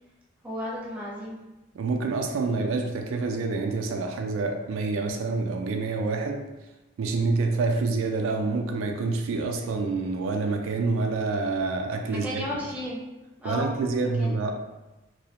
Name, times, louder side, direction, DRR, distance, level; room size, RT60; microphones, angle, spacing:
voice 1, 0.4-1.4 12.1-13.0 13.4-13.8 14.2-14.4, equal, 10° right, -6 dB, 0.5 m, -33 dB
voice 2, 1.7-6.4 7.0-12.4 13.4-14.5, right 3 dB, 85° right, 3 dB, 0.3 m, -27 dB
2.3 x 2.1 x 2.8 m, 1.1 s
head